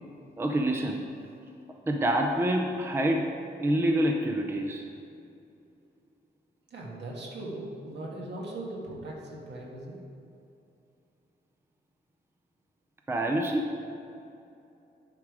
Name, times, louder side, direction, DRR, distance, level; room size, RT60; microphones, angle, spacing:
voice 1, 0.4-1.0 1.8-3.3 3.6-4.8 13.1-13.7, right 1 dB, 15° right, 3 dB, 0.5 m, -26 dB
voice 2, 6.7-10.0, right 1 dB, 70° right, -2 dB, 1.7 m, -39 dB
10.5 x 5.1 x 4.8 m, 2.7 s
wide cardioid pair, 175°, 18 cm